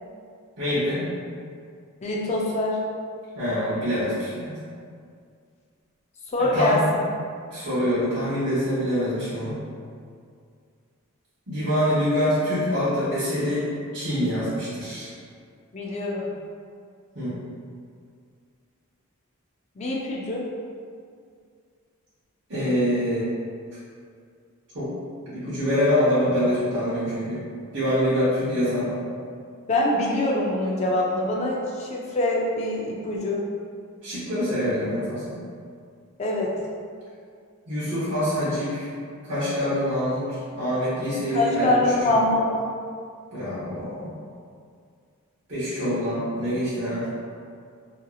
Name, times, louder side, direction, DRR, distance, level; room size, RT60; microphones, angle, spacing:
voice 1, 0.6-1.0 3.3-4.6 6.4-6.9 7.5-9.6 11.5-13.7 13.9-15.1 17.1-17.3 22.5-23.3 24.7-24.9 25.3-27.4 27.7-29.0 34.0-35.4 37.7-38.9 39.2-42.1 43.3-44.1 45.5-47.1, equal, 55° right, -13 dB, 0.9 m, -25 dB
voice 2, 2.0-2.8 6.3-6.8 15.7-16.3 19.8-20.5 29.7-33.5 36.2-36.6 41.3-42.5, left 1 dB, 30° left, -2 dB, 0.3 m, -24 dB
2.8 x 2.6 x 2.3 m, 2.2 s
head